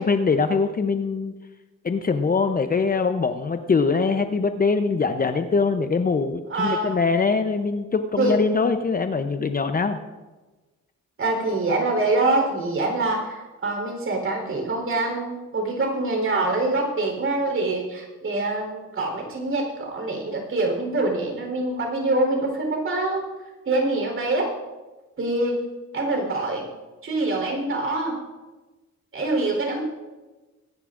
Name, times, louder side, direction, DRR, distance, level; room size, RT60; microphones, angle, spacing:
voice 1, 0.0-1.3 1.8-10.0, left 4 dB, 30° left, 8 dB, 0.7 m, -23 dB
voice 2, 6.5-6.9 8.2-8.3 11.2-23.3 23.7-24.5 25.2-25.6 25.9-26.7 27.0-28.2 29.1-29.8, right 2 dB, 45° right, 2 dB, 4.0 m, -25 dB
22.0 x 10.5 x 2.6 m, 1.2 s
cardioid pair, 90°, 30 cm